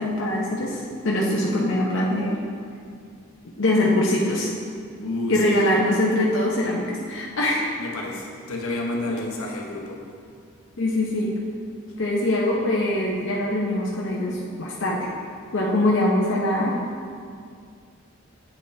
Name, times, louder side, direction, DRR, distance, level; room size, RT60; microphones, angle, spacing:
voice 1, 0.0-2.4 3.6-4.5 5.3-7.7 10.8-11.3 12.0-15.1 15.5-16.8, left 1 dB, 65° left, -4 dB, 0.7 m, -23 dB
voice 2, 5.0-5.8 7.8-10.0, left 2 dB, 85° left, -1 dB, 1.0 m, -29 dB
8.2 x 5.5 x 3.3 m, 2.2 s
head